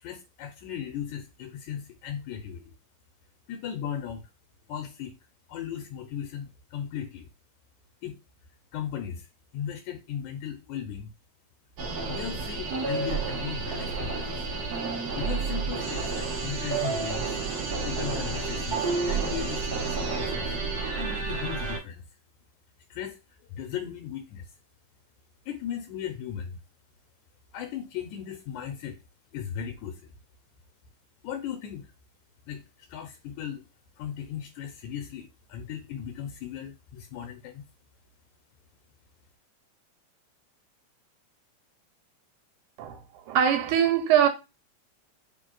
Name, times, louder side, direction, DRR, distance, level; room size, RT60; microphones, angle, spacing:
voice 1, 0.0-2.6 3.5-4.2 4.7-5.1 5.5-7.3 8.0-8.2 8.7-9.3 9.5-11.1 12.1-14.3 15.2-17.3 17.8-18.8 19.1-20.5 20.9-22.0 22.9-23.2 23.5-24.5 25.5-26.6 27.5-29.0 29.3-30.1 31.2-31.9 32.5-32.6 32.9-33.6 34.0-37.7, left 9 dB, 80° left, 2.0 m, -37 dB
sound 1, 11.8-21.8, right 4 dB, 55° right, 1.1 m, -30 dB
voice 2, 43.3-44.3, right 9 dB, 85° right, 2.3 m, -22 dB
6.4 x 3.2 x 2.3 m
omnidirectional pair, 3.4 m